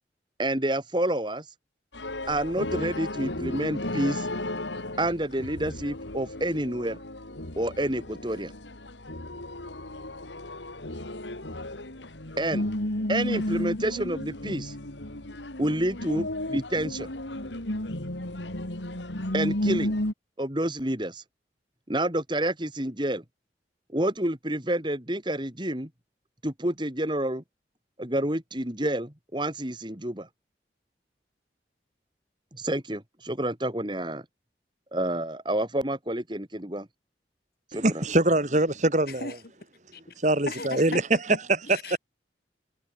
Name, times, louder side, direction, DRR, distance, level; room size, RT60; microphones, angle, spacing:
voice 1, 0.4-1.4 2.3-4.3 5.0-7.0 7.6-8.5 12.4-12.7 13.1-14.7 15.6-17.1 19.3-20.0 20.4-21.2 21.9-23.2 23.9-25.9 26.4-27.4 28.0-30.3 32.5-34.2 34.9-36.9 37.7-38.0, right 1 dB, 25° right, 3.7 m, -29 dB
sound 1, 1.9-20.1, left 1 dB, 90° left, 3.5 m, -33 dB
voice 2, 37.7-39.3 40.2-41.0 41.7-42.0, right 1 dB, 40° right, 2.7 m, -23 dB
voice 3, 40.5-42.0, left 3 dB, 55° left, 5.6 m, -37 dB
head